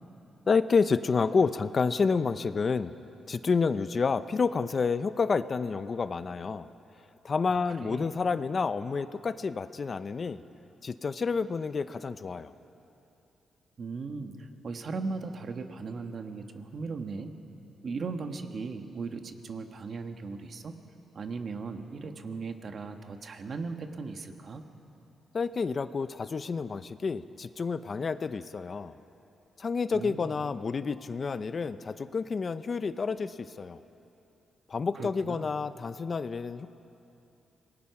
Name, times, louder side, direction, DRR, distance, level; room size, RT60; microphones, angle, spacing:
voice 1, 0.5-2.9 3.3-6.7 7.2-10.4 10.8-12.5 25.3-29.0 29.6-33.8 34.7-36.7, left 5 dB, 40° left, 13 dB, 0.6 m, -29 dB
voice 2, 7.5-8.1 13.8-17.3 17.8-20.7 21.1-24.6 29.9-30.3 34.9-35.5, right 4 dB, 50° right, 6 dB, 1.5 m, -38 dB
26.5 x 20.0 x 5.9 m, 2.9 s
cardioid pair, 100°, 0 cm